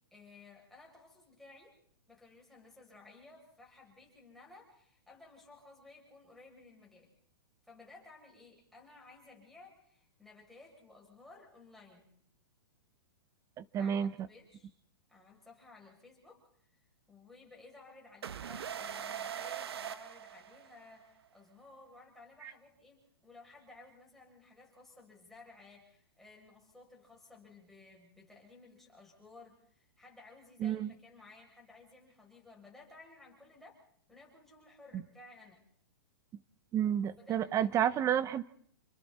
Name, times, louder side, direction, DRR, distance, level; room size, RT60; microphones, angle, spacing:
voice 1, 0.1-1.8 2.1-7.1 7.6-12.2 13.8-14.7 15.1-16.4 16.7-16.8 17.1-33.8 34.1-35.6 37.2-37.7, left 3 dB, ahead, -3 dB, 7.5 m, -57 dB
voice 2, 13.6-14.1 22.4-22.5 30.6-30.9 36.7-38.4, right 9 dB, 25° right, 16 dB, 0.9 m, -30 dB
sound 1, 18.2-21.0, right 8 dB, 80° right, 1.3 m, -41 dB
29.5 x 23.5 x 4.3 m, 0.63 s
hypercardioid pair, 135°, 13 cm